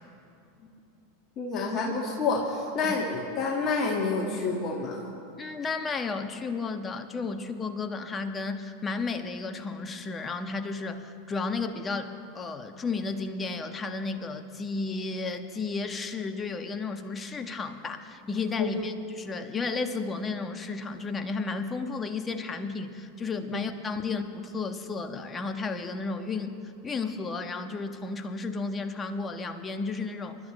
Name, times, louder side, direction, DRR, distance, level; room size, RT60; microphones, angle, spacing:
voice 1, 1.4-5.0 18.6-18.7 23.5-23.6, left 4 dB, 35° left, -1 dB, 1.9 m, -28 dB
voice 2, 5.4-30.4, left 4 dB, 20° left, 7 dB, 1.3 m, -33 dB
27.5 x 12.5 x 3.3 m, 2.8 s
figure-of-eight pair, 85°, 0 cm